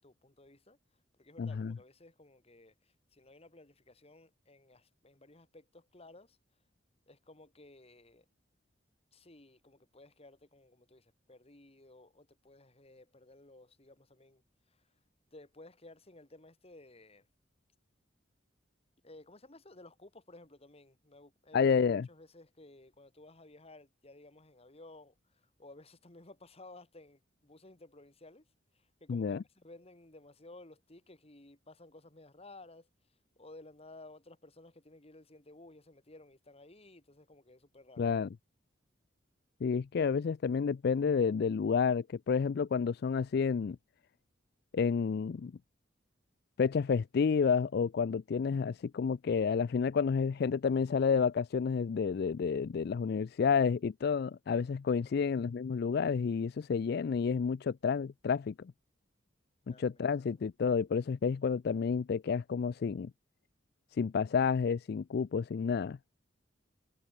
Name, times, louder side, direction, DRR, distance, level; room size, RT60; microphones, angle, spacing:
voice 1, 0.0-6.4 7.1-8.3 9.1-15.0 15.3-17.3 19.0-38.1 55.0-55.3 59.7-60.1, left 2 dB, 35° left, 2.2 m, -56 dB
voice 2, 1.4-1.7 21.5-22.1 29.1-29.4 38.0-38.3 39.6-43.8 44.7-45.5 46.6-58.7 59.7-63.1 63.9-66.0, left 6 dB, 60° left, 0.4 m, -30 dB
head